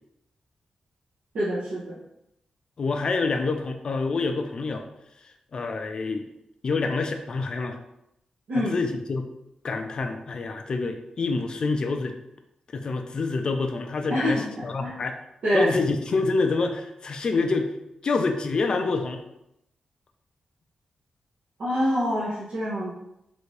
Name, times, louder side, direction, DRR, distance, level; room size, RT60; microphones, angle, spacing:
voice 1, 1.3-2.0 8.5-8.7 14.1-14.9 15.4-15.7 21.6-22.9, equal, 85° right, -10 dB, 1.0 m, -26 dB
voice 2, 2.8-4.8 5.5-6.2 6.6-7.8 8.6-9.3 9.6-12.1 12.7-15.2 15.5-17.7 18.0-19.2, left 3 dB, 40° left, 5 dB, 0.3 m, -27 dB
3.3 x 2.6 x 3.2 m, 0.82 s
wide cardioid pair, 180°, 2 cm